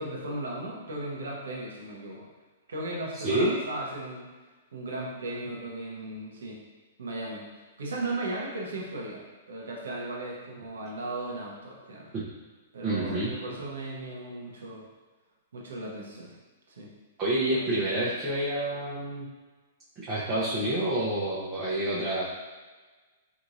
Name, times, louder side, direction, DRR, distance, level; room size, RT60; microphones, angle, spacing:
voice 1, 0.0-2.3 2.7-4.3 4.7-6.6 7.0-7.4 7.8-9.2 9.5-12.1 12.7-14.9 15.5-16.3 16.7-16.9 17.5-17.6, right 2 dB, 80° right, -2 dB, 0.9 m, -36 dB
voice 2, 3.1-3.5 12.1-12.2 12.8-13.3 17.2-19.3 20.0-22.2, right 1 dB, 30° right, -8 dB, 0.8 m, -28 dB
3.6 x 3.1 x 2.6 m, 1.3 s
hypercardioid pair, 125°, 0 cm